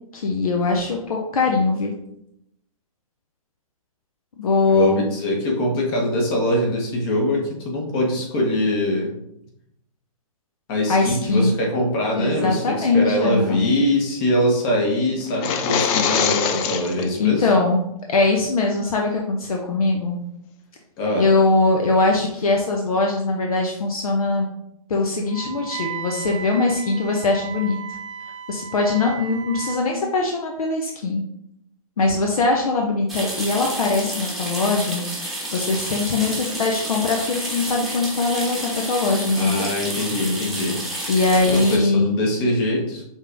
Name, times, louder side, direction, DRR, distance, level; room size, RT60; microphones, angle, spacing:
voice 1, 0.1-1.9 4.4-4.9 10.9-11.5 12.1-13.6 17.2-17.8 18.1-20.2 21.2-24.5 24.9-28.0 28.5-31.2 32.0-35.0 35.5-39.7 41.1-42.1, left 3 dB, 75° left, 1 dB, 0.8 m, -21 dB
voice 2, 4.7-9.1 10.7-17.5 21.0-21.2 39.4-40.8 41.4-43.0, left 1 dB, 40° left, -1 dB, 1.4 m, -22 dB
sound 1, 15.3-17.1, left 7 dB, 25° left, 0.4 m, -23 dB
Wind instrument woodwind instrument, 25.3-29.9, right 8 dB, 55° right, 0.5 m, -35 dB
sound 2, 33.1-41.8, right 1 dB, ahead, 1.1 m, -30 dB
5.2 x 3.5 x 2.6 m, 0.79 s
hypercardioid pair, 130°, 19 cm